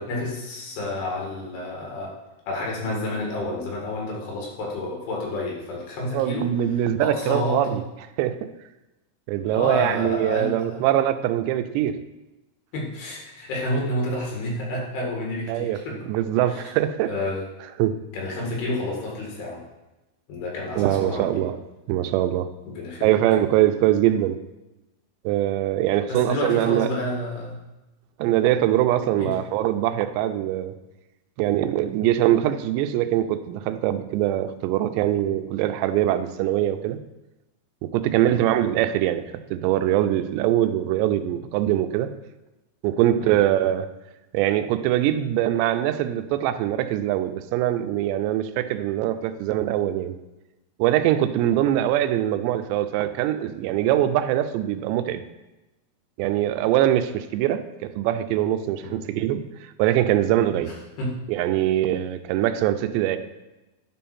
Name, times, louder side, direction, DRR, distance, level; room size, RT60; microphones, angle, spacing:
voice 1, 0.0-2.1 2.5-6.5 7.0-7.8 9.5-10.8 12.7-16.0 16.5-16.7 17.1-17.5 18.1-19.6 20.3-21.4 22.7-23.1 26.1-27.6 29.2-29.4 38.2-38.5 43.2-43.4 58.8-58.9 60.5-60.6 61.0-61.2, left 1 dB, 70° left, -2 dB, 3.9 m, -30 dB
voice 2, 6.1-7.8 8.2-8.4 9.3-12.0 15.5-17.1 17.8-18.0 20.8-21.6 21.9-22.5 23.0-24.4 25.3-26.9 28.2-30.7 31.4-37.0 37.8-39.2 39.5-42.1 42.8-43.9 44.3-50.1 50.8-55.2 56.2-59.4 59.8-60.7 61.3-63.2, right 12 dB, 90° right, 10 dB, 2.8 m, -22 dB
10.5 x 5.5 x 4.3 m, 1.0 s
omnidirectional pair, 4.9 m